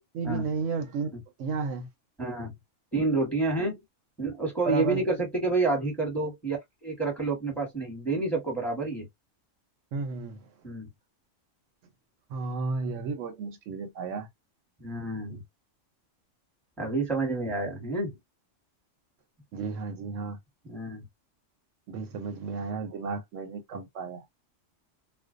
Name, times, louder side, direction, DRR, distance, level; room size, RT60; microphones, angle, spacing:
voice 1, 0.1-1.1 1.4-1.9 4.6-5.0 9.9-10.4 12.3-14.3 19.5-20.4 21.9-24.2, right 4 dB, 75° right, 0.9 m, -33 dB
voice 2, 2.2-2.5 2.9-3.8 4.2-9.1 10.6-10.9 14.8-15.4 16.8-18.2 20.6-21.0, right 3 dB, ahead, 1.0 m, -29 dB
2.5 x 2.1 x 2.4 m
omnidirectional pair, 1.3 m